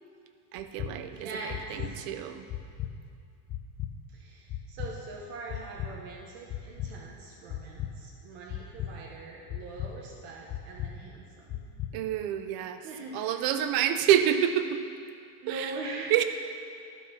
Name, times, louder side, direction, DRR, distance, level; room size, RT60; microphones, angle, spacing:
voice 1, 0.5-2.4 11.9-12.9 13.1-14.8 15.5-15.7 16.1-16.2, right 10 dB, 55° right, 9 dB, 0.7 m, -27 dB
sound 1, 0.6-0.9 1.5-1.9 2.5-2.9 3.5-3.9 4.5-4.9 5.5-5.9 6.5-6.9 7.5-7.9 8.5-8.9 9.5-9.9 10.5-10.9 11.5-11.9, left 12 dB, 25° left, 0.4 m, -35 dB
voice 2, 1.1-1.7 4.1-11.6 12.8-13.3 15.4-16.1, right 3 dB, 80° right, -2 dB, 1.3 m, -42 dB
12.5 x 4.3 x 5.9 m, 2.4 s
cardioid pair, 155°, 44 cm